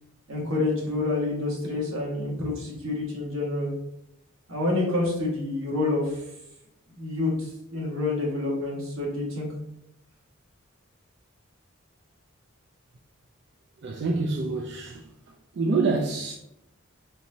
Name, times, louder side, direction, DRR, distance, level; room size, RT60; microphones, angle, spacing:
voice 1, 0.3-3.7 4.5-6.3 6.9-9.5, left 2 dB, 85° right, 1.8 m, -28 dB
voice 2, 13.8-15.1 15.5-16.3, right 3 dB, 60° right, 0.4 m, -26 dB
4.5 x 4.1 x 2.8 m
head